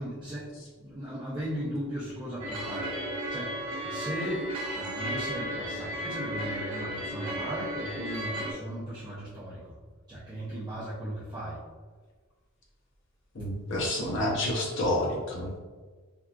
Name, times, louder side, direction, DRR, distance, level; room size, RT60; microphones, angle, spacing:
voice 1, 0.0-4.5 4.7-9.7 10.1-11.6, right 1 dB, 20° right, -10 dB, 0.5 m, -37 dB
sound 1, 2.4-8.5, equal, 85° right, 0.6 m, -34 dB
voice 2, 13.3-15.6, left 1 dB, 55° left, -1 dB, 0.7 m, -29 dB
3.6 x 2.4 x 2.3 m, 1.4 s
head